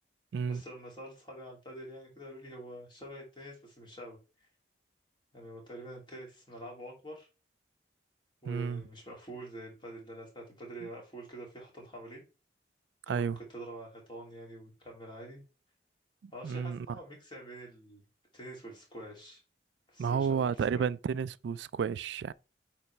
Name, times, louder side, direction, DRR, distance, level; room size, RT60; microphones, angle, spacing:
voice 1, 0.5-4.2 5.3-7.3 8.4-12.2 13.1-15.4 16.3-18.0 18.3-19.4 19.9-20.5 20.7-20.8, right 1 dB, 25° left, 2.6 m, -46 dB
voice 2, 8.5-8.8 13.1-13.4 16.2-17.0 20.0-22.3, right 6 dB, 80° right, 0.3 m, -31 dB
8.4 x 4.1 x 3.3 m
head